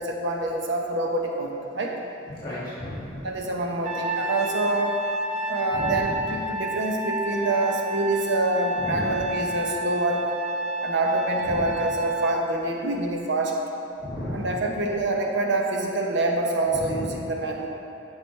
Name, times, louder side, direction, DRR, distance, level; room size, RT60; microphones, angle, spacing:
voice 1, 0.0-1.9 3.2-5.0 5.5-10.2 10.8-13.5 14.3-17.7, right 2 dB, 65° right, 0 dB, 0.9 m, -26 dB
voice 2, 2.3-3.3 5.7-6.1 8.8-9.3 11.4-11.7 14.0-14.6 16.7-17.1, left 1 dB, 25° left, -10 dB, 2.0 m, -34 dB
Trumpet, 3.8-12.4, right 1 dB, 35° right, 0.7 m, -30 dB
13.0 x 4.9 x 3.3 m, 2.8 s
head